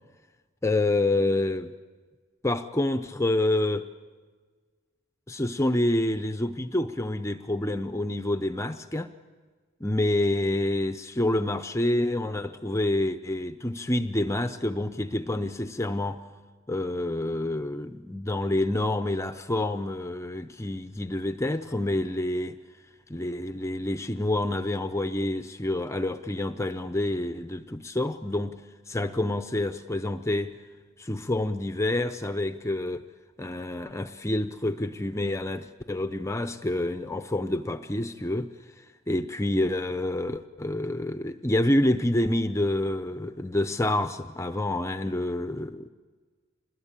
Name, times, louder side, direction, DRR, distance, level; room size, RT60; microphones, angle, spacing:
voice 1, 0.6-1.7 2.4-3.9 5.3-9.1 9.8-16.2 16.7-22.6 23.1-28.6 28.9-30.6 31.0-33.0 33.4-38.5 38.8-45.9, left 1 dB, 15° left, 9 dB, 0.7 m, -28 dB
26.5 x 21.0 x 8.9 m, 1.5 s
head